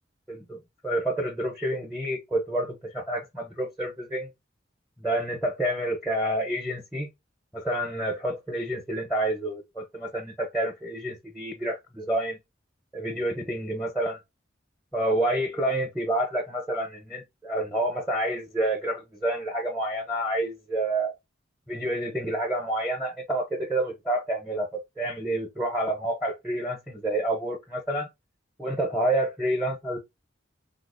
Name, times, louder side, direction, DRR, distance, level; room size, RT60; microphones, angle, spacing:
voice 1, 0.3-0.6 0.8-4.3 5.0-7.1 7.5-12.4 12.9-14.2 14.9-21.1 21.7-28.1 28.6-30.0, right 1 dB, ahead, 0.6 m, -28 dB
3.8 x 2.4 x 2.4 m
head